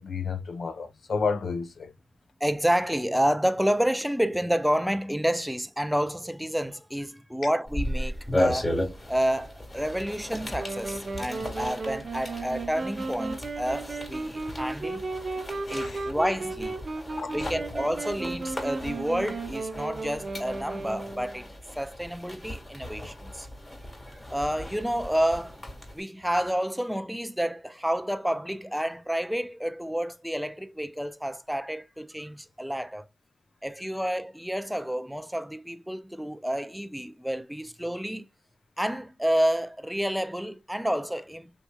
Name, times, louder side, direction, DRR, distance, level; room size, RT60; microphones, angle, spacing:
voice 1, 0.0-1.9 15.7-16.0 17.2-17.5, left 5 dB, 70° left, 0.6 m, -31 dB
voice 2, 2.4-8.7 9.1-15.0 15.7-16.8 17.3-21.5 21.8-23.5 24.1-25.6 25.9-33.1 33.6-38.3 38.8-41.5, equal, 5° right, 0.4 m, -29 dB
sound 1, 7.7-26.0, left 1 dB, 30° left, 1.5 m, -36 dB
Wind instrument woodwind instrument, 10.6-21.5, right 3 dB, 55° right, 0.6 m, -35 dB
3.2 x 2.8 x 2.2 m
cardioid pair, 50°, 0 cm